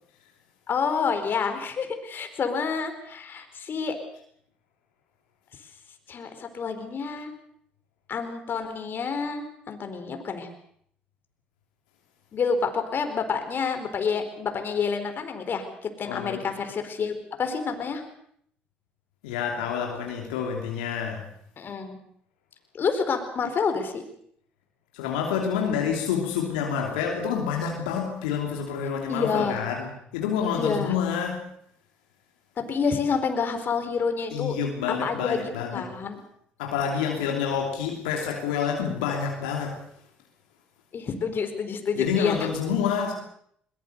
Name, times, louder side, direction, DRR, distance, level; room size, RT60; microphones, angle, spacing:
voice 1, 0.7-4.0 6.1-7.3 8.1-10.5 12.3-18.0 21.6-22.0 22.7-24.0 29.1-29.6 30.5-30.9 32.7-34.6 35.0-36.2 40.9-42.4, left 5 dB, 50° left, 7 dB, 4.4 m, -28 dB
voice 2, 16.1-16.4 19.2-21.3 24.9-31.5 34.3-35.8 36.6-39.9 41.9-43.1, left 7 dB, 85° left, 1 dB, 3.0 m, -28 dB
22.0 x 20.5 x 6.8 m, 0.68 s
hypercardioid pair, 55°, 4 cm